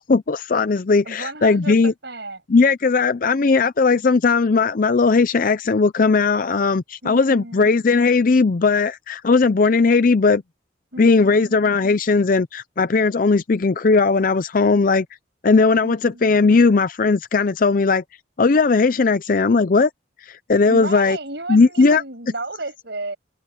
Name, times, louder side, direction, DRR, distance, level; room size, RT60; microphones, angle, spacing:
voice 1, 0.0-1.9 2.5-10.4 11.0-15.1 15.4-18.0 18.4-19.9 20.2-21.2 21.5-22.0, left 4 dB, 45° left, 0.5 m, -17 dB
voice 2, 1.0-2.4 7.0-7.8 10.9-11.6 15.8-16.3 20.6-23.2, right 2 dB, 60° right, 7.5 m, -33 dB
head